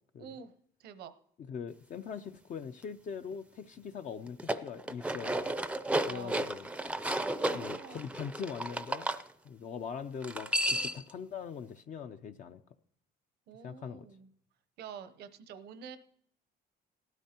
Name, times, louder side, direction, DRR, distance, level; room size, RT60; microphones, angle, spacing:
voice 1, 0.2-0.5 0.8-1.1 6.0-6.3 7.3-8.1 13.5-14.3 14.8-16.0, right 7 dB, 75° right, 12 dB, 0.8 m, -47 dB
voice 2, 1.4-5.5 6.1-6.7 7.5-9.1 9.4-12.6 13.6-14.1, left 6 dB, 50° left, 6 dB, 0.6 m, -42 dB
sound 1, 4.3-9.2 10.2-11.1, right 1 dB, 5° right, 0.5 m, -33 dB
18.0 x 12.5 x 2.9 m, 0.69 s
cardioid pair, 110°, 17 cm